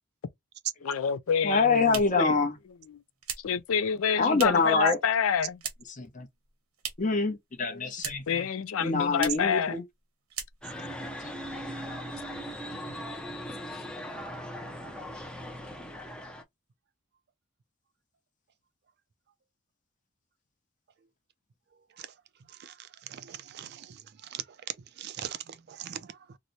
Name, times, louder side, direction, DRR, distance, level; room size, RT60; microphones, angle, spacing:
voice 1, 0.8-2.4 2.9-3.0 3.4-5.6 7.7-7.9 8.3-9.8, left 7 dB, 75° left, 0.4 m, -28 dB
sound 1, 1.3-4.8 5.1-6.0 6.3-7.2 7.5-8.4 8.7-8.8 9.1-9.5 9.9-10.0 10.3-10.9, right 8 dB, 80° right, 0.9 m, -40 dB
voice 2, 1.4-2.6 4.2-5.0 5.9-6.3 7.0-8.5 8.8-9.8 11.2-11.3, left 3 dB, 35° left, 0.8 m, -26 dB
sound 2, 10.6-16.4, equal, 5° left, 0.5 m, -39 dB
voice 3, 22.5-24.4 25.0-26.4, right 10 dB, 50° right, 0.4 m, -42 dB
2.9 x 2.1 x 3.9 m
head